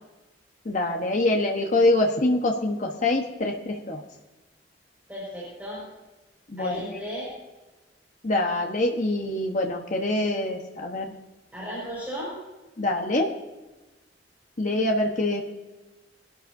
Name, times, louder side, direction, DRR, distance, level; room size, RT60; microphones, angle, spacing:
voice 1, 0.6-4.0 6.5-6.8 8.2-11.1 12.8-13.3 14.6-15.4, left 2 dB, 45° left, 1 dB, 1.1 m, -24 dB
voice 2, 5.1-5.8 6.6-7.3 11.5-12.3, equal, 10° right, -8 dB, 5.1 m, -35 dB
22.5 x 12.0 x 2.7 m, 1.1 s
head